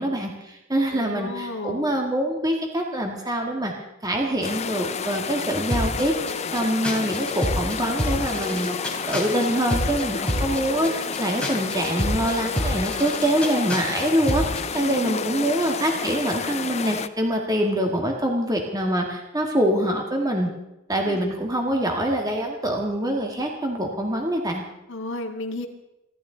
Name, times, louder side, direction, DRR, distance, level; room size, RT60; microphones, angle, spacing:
voice 1, 0.0-3.7 4.0-6.1 6.5-20.5 20.9-24.6, right 1 dB, 20° right, 1 dB, 1.8 m, -25 dB
voice 2, 0.9-1.9 14.8-15.5 21.1-21.3 24.9-25.7, left 2 dB, 60° left, 1 dB, 1.9 m, -33 dB
sound 1, 4.4-17.1, left 6 dB, 30° left, 0.5 m, -31 dB
sound 2, 5.7-14.7, equal, 5° left, 3.3 m, -29 dB
27.5 x 12.0 x 3.9 m, 0.91 s
head